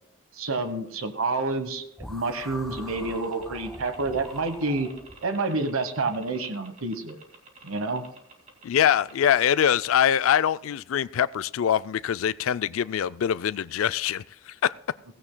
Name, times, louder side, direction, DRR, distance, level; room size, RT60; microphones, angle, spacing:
voice 1, 0.4-4.9 5.2-7.2 7.6-8.0, right 3 dB, 85° right, 1.1 m, -28 dB
sound 1, 2.0-5.2, left 1 dB, ahead, 1.1 m, -42 dB
sound 2, 2.8-9.5, right 3 dB, 35° right, 2.1 m, -49 dB
voice 2, 8.6-14.7, left 9 dB, 75° left, 0.3 m, -24 dB
16.5 x 15.5 x 2.2 m
head